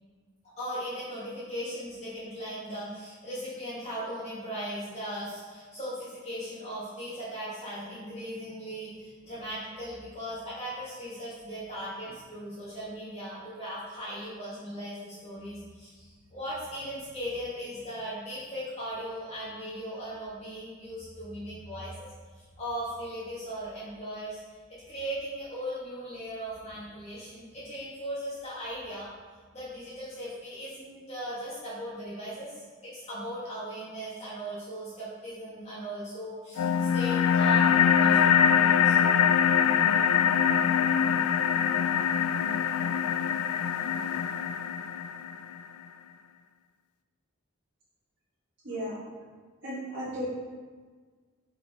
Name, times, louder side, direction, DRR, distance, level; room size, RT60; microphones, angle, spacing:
voice 1, 0.6-24.6 24.9-29.1 29.5-38.3 38.6-39.0, equal, 30° left, -10 dB, 1.5 m, -38 dB
sound 1, 36.6-45.6, left 8 dB, 85° left, 0.3 m, -23 dB
voice 2, 48.6-49.0 49.6-50.2, equal, 55° right, -11 dB, 1.6 m, -34 dB
5.8 x 5.2 x 3.5 m, 1.5 s
head